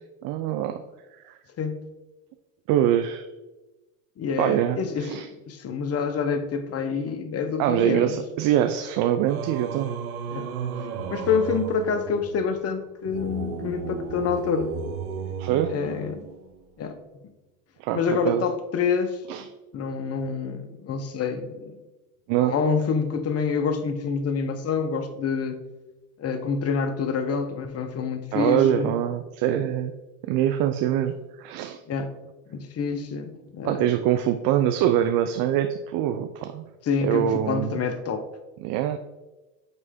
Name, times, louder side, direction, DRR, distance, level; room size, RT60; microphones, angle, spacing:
voice 1, 0.2-0.8 1.2-1.3 2.7-3.2 4.4-5.3 7.6-9.9 15.4-15.8 17.8-18.4 19.3-19.5 22.3-22.5 28.3-29.9 30.3-31.8 33.6-36.6 37.0-37.8 38.6-39.0, right 11 dB, 55° right, 8 dB, 0.5 m, -24 dB
voice 2, 4.2-8.2 10.3-10.5 11.1-14.7 15.7-16.3 16.8-17.0 17.9-19.5 19.7-21.8 22.4-25.6 26.2-28.9 31.9-32.1 32.5-33.9 36.8-38.2, left 5 dB, 35° left, 8 dB, 0.8 m, -27 dB
Singing, 9.3-16.6, right 6 dB, 90° right, 0.8 m, -34 dB
8.1 x 3.3 x 3.6 m, 1.1 s
hypercardioid pair, 85°, 42 cm